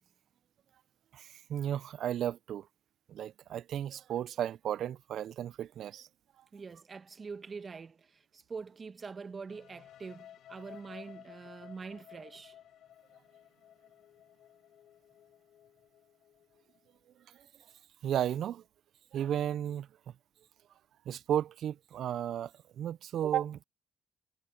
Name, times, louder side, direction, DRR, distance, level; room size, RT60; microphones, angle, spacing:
voice 1, 1.1-2.6 3.1-6.1 18.0-18.6 19.1-19.9 21.1-22.5 22.8-23.6, right 10 dB, 70° right, 0.3 m, -34 dB
voice 2, 6.5-8.1 8.3-12.5, right 5 dB, 40° right, 1.4 m, -44 dB
sound 1, 9.5-17.2, left 11 dB, 75° left, 3.8 m, -56 dB
cardioid pair, 90°, 0 cm